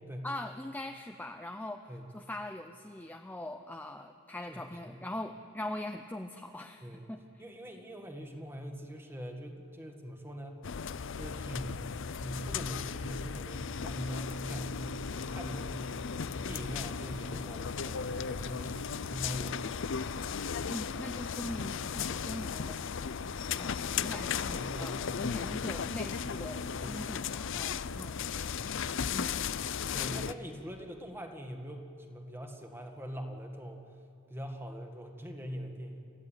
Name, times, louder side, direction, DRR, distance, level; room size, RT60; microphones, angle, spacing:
voice 1, 0.2-7.2 20.7-22.9 23.5-28.2 29.1-29.6 30.1-30.3, left 1 dB, 10° left, 5 dB, 0.6 m, -42 dB
voice 2, 4.5-5.0 6.8-7.1 7.4-10.6 11.1-16.1 16.3-19.6 19.9-20.1 24.5-25.7 25.9-26.3 26.8-27.0 28.0-28.2 29.9-33.8 34.3-36.0, equal, 10° right, 4 dB, 1.8 m, -43 dB
sound 1, 10.6-30.3, left 6 dB, 60° left, 0.6 m, -36 dB
29.5 x 14.5 x 9.0 m, 2.6 s
head